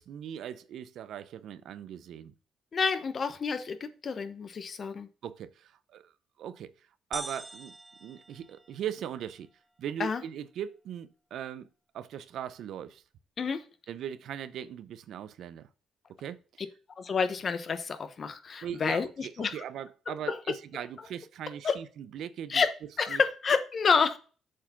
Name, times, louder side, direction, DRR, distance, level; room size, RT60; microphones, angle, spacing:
voice 1, 0.0-2.3 5.2-6.1 6.4-6.7 7.1-9.5 9.8-11.7 11.9-13.0 13.9-15.7 16.2-16.4 18.6-22.6 23.1-23.2, right 9 dB, 75° right, 0.7 m, -39 dB
voice 2, 2.7-5.1 10.0-10.2 13.4-13.6 17.0-19.6 20.1-20.4 21.6-21.8 22.5-24.2, left 5 dB, 45° left, 1.1 m, -29 dB
sound 1, 7.1-9.1, right 2 dB, 10° right, 0.9 m, -43 dB
7.4 x 4.7 x 5.7 m
cardioid pair, 90°, 0 cm